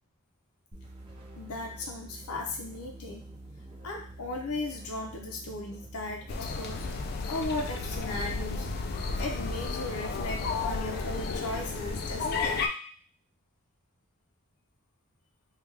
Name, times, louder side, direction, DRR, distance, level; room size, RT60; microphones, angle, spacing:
sound 1, 0.7-9.8, right 1 dB, 25° right, 0.6 m, -47 dB
voice 1, 1.4-3.2 3.8-6.8 7.3-8.7 9.1-12.6, left 2 dB, 85° left, 1 dB, 0.6 m, -36 dB
sound 2, 6.3-12.7, left 4 dB, 45° left, 0.3 m, -33 dB
3.4 x 2.3 x 3.2 m, 0.43 s
head